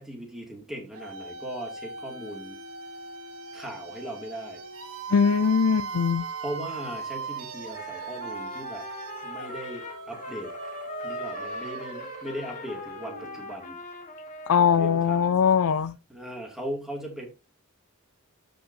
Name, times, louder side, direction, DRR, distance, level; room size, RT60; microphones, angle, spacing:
voice 1, 0.0-2.6 3.5-4.6 6.4-8.8 9.2-10.5 11.0-13.8 14.6-15.4 16.1-17.3, right 1 dB, ahead, 2.4 m, -38 dB
sound 1, 0.9-13.7, right 4 dB, 85° right, 1.5 m, -39 dB
voice 2, 5.1-6.3 14.5-16.0, left 6 dB, 80° left, 0.5 m, -21 dB
Trumpet, 7.7-15.1, left 2 dB, 35° left, 1.7 m, -40 dB
13.5 x 5.3 x 2.8 m
head